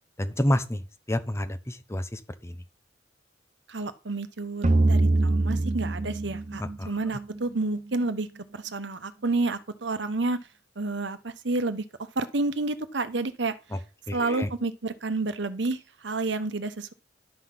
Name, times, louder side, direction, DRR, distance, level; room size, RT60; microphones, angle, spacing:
voice 1, 0.2-2.6 6.6-7.0 13.7-13.8 14.1-14.5, left 1 dB, 15° left, 0.9 m, -29 dB
voice 2, 3.7-8.3 8.5-10.4 10.8-11.8 12.2-13.5 14.1-16.9, right 3 dB, 70° right, 1.0 m, -30 dB
sound 1, 4.6-7.9, right 2 dB, 40° right, 0.7 m, -24 dB
11.5 x 5.7 x 6.0 m
head